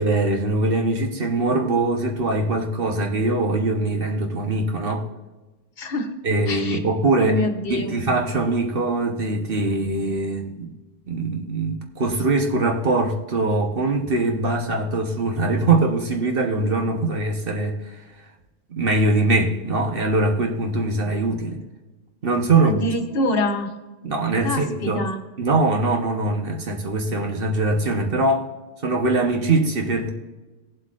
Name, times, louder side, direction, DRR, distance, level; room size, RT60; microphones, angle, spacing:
voice 1, 0.0-5.0 6.2-7.4 7.7-10.7 11.1-18.0 18.7-21.6 22.2-22.8 24.0-25.0 25.4-28.5 28.8-30.1, right 2 dB, 65° right, 2 dB, 1.3 m, -22 dB
voice 2, 5.8-6.1 6.5-6.8 7.2-7.9 22.6-23.7 24.4-25.2, left 2 dB, 65° left, 5 dB, 1.1 m, -25 dB
17.0 x 7.8 x 2.5 m, 1.2 s
omnidirectional pair, 1.0 m